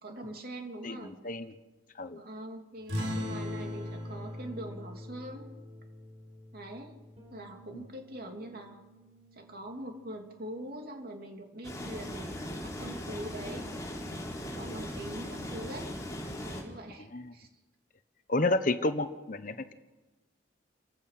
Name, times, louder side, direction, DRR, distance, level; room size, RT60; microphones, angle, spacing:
voice 1, 0.0-1.1 2.2-5.5 6.5-6.9 7.3-8.8 9.3-13.7 14.5-15.9 16.2-17.5, right 1 dB, 50° right, 2 dB, 3.1 m, -43 dB
voice 2, 0.8-1.5 2.0-2.2 17.0-17.3 18.3-19.7, left 2 dB, 45° left, 10 dB, 1.1 m, -31 dB
sound 1, 2.9-7.9, left 1 dB, 75° right, 5.7 m, -39 dB
Bass guitar, 7.2-16.8, right 3 dB, 35° right, 5.3 m, -64 dB
sound 2, 11.6-16.6, left 1 dB, 20° left, 4.0 m, -39 dB
29.5 x 15.5 x 5.9 m, 1.2 s
head